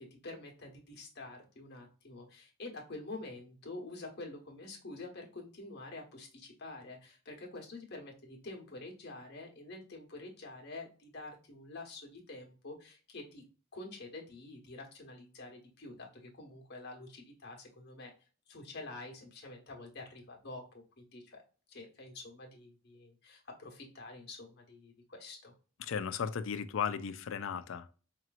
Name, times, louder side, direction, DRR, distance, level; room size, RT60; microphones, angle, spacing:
voice 1, 0.0-13.4 13.7-18.1 18.5-21.4 21.7-25.5, left 2 dB, 55° left, 1.2 m, -47 dB
voice 2, 25.8-27.9, left 7 dB, 80° left, 0.4 m, -35 dB
4.8 x 3.0 x 2.4 m
head